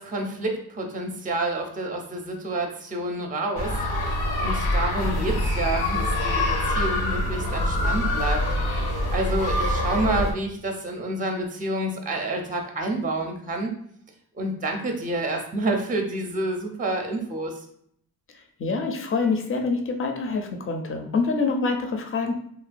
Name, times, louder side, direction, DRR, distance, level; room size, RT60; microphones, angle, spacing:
voice 1, 0.0-8.4 9.1-13.8 14.3-17.6, right 2 dB, 20° right, 2 dB, 0.5 m, -28 dB
sound 1, 3.6-10.3, left 1 dB, 75° left, 0.6 m, -25 dB
voice 2, 18.3-22.3, left 4 dB, 35° left, 4 dB, 0.5 m, -26 dB
2.9 x 2.2 x 2.5 m, 0.68 s
cardioid pair, 60°, 37 cm